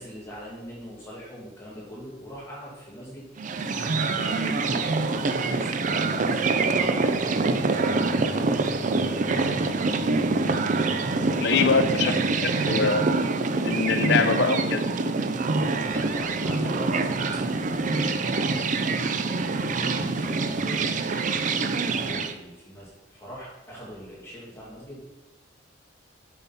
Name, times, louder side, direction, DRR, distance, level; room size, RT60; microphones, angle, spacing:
voice 1, 0.0-3.2 4.1-8.3 8.8-9.8 11.5-11.8 15.5-16.9 17.5-18.2 19.6-21.1 21.9-25.0, equal, 15° left, -8 dB, 2.4 m, -42 dB
sound 1, 3.4-22.3, right 3 dB, 40° right, 0.4 m, -25 dB
sound 2, 5.3-13.1, equal, 90° right, 2.2 m, -45 dB
voice 2, 11.4-13.1 13.6-14.9, left 5 dB, 60° left, 9 dB, 0.5 m, -24 dB
7.0 x 5.8 x 4.1 m, 1.1 s
head